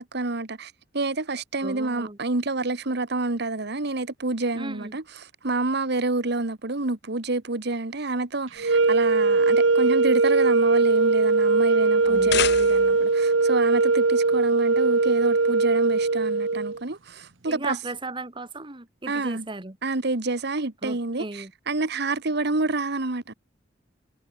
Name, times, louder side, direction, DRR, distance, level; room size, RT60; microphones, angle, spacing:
voice 1, 0.0-5.0 5.4-17.8 19.1-19.5 19.8-23.3, right 2 dB, 60° right, 1.6 m, -28 dB
voice 2, 1.6-2.2 4.5-5.0 12.0-12.5 17.5-19.8 20.8-21.5, right 2 dB, 25° right, 1.9 m, -36 dB
sound 1, 8.6-16.8, right 3 dB, 90° right, 1.1 m, -20 dB
sound 2, 12.0-13.1, left 8 dB, 65° left, 4.6 m, -29 dB
head